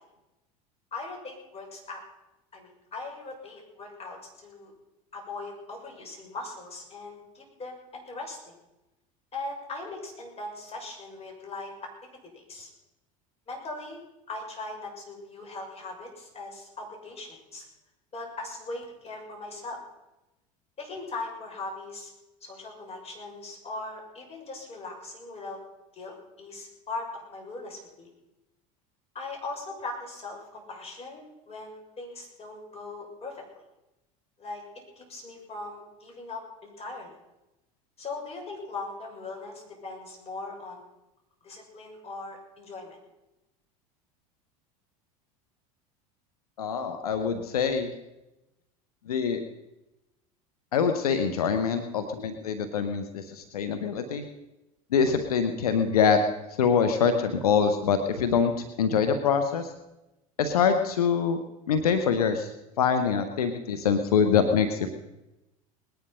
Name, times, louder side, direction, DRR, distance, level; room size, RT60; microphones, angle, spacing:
voice 1, 0.9-2.0 2.5-4.2 4.4-4.7 5.1-8.5 9.3-11.7 12.3-12.7 13.5-14.0 14.3-17.7 18.1-19.8 20.8-22.1 22.4-25.6 25.9-28.1 29.1-33.4 34.4-34.6 34.9-37.2 38.0-40.9 41.4-43.0, left 3 dB, 35° left, 0 dB, 6.4 m, -39 dB
voice 2, 46.6-47.9 49.1-49.4 50.7-54.2 54.9-56.2 56.6-59.7 60.4-61.4 61.7-62.5 62.8-64.9, left 6 dB, 90° left, 9 dB, 1.3 m, -24 dB
20.0 x 10.5 x 5.7 m, 0.96 s
hypercardioid pair, 90°, 19 cm